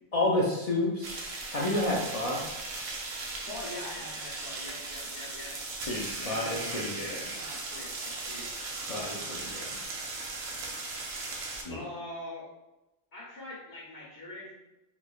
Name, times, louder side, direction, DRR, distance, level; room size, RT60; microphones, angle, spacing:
voice 1, 0.1-1.3 1.5-2.4 5.9-7.2 8.9-9.6 11.6-11.8, left 1 dB, 45° left, -4 dB, 0.5 m, -30 dB
sound 1, 1.0-11.6, right 3 dB, 85° right, 0.9 m, -38 dB
voice 2, 3.4-5.6 6.2-8.5 11.4-12.5 13.1-14.5, left 2 dB, 80° left, -7 dB, 1.2 m, -43 dB
3.6 x 3.2 x 2.3 m, 0.98 s
omnidirectional pair, 1.1 m